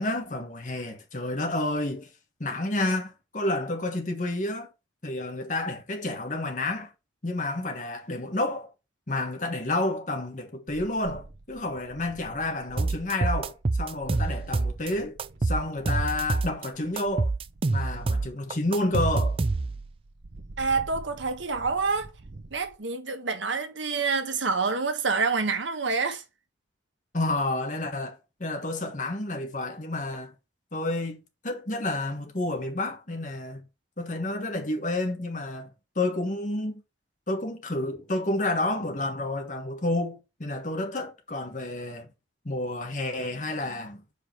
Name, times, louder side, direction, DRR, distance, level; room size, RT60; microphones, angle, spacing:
voice 1, 0.0-2.1 2.4-4.7 5.0-6.9 7.2-8.7 9.1-15.2 15.4-17.3 17.7-19.4 27.1-30.3 30.7-33.6 34.0-35.7 35.9-36.8 37.3-42.1 42.4-44.0, left 2 dB, 40° left, 1.3 m, -30 dB
sound 1, 10.7-22.8, right 2 dB, 70° right, 0.8 m, -48 dB
sound 2, 12.8-14.9 15.2-16.7 17.0-19.9, right 3 dB, 30° right, 0.3 m, -26 dB
voice 2, 20.6-22.1 22.5-26.2, right 4 dB, 90° right, 1.3 m, -27 dB
4.9 x 4.9 x 5.8 m
head